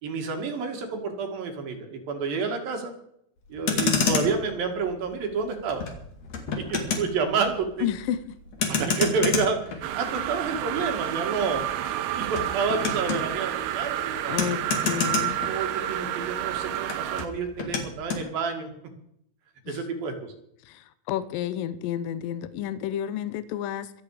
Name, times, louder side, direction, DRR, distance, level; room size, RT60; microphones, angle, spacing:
voice 1, 0.0-2.9 3.5-5.8 6.6-7.9 8.7-11.6 12.2-14.4 14.9-15.0 15.4-18.7 19.7-20.3, right 4 dB, 65° right, 4 dB, 3.8 m, -29 dB
Motor vehicle (road), 3.5-16.1 16.4-18.3, left 5 dB, 50° left, 3.2 m, -30 dB
voice 2, 7.8-8.4 8.7-8.8 14.3-14.6 14.8-15.4 19.7-19.8 20.6-23.9, left 11 dB, 75° left, 13 dB, 2.4 m, -31 dB
sound 1, 9.8-17.3, right 12 dB, 85° right, 2.9 m, -30 dB
25.0 x 8.5 x 5.0 m, 0.72 s
omnidirectional pair, 4.5 m